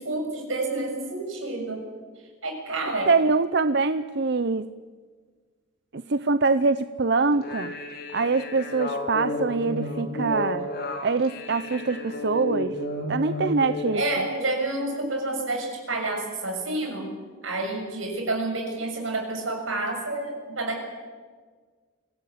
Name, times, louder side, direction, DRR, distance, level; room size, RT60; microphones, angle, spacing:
voice 1, 0.0-1.8 2.4-3.1 13.9-17.1 17.4-20.8, right 2 dB, 85° right, 2 dB, 6.9 m, -29 dB
voice 2, 3.1-4.7 5.9-7.7 8.1-10.7 11.0-12.7 13.1-14.2, right 4 dB, 55° right, 12 dB, 0.7 m, -24 dB
sound 1, 7.3-14.0, left 1 dB, 55° left, 4.8 m, -32 dB
24.0 x 17.5 x 8.7 m, 1.5 s
head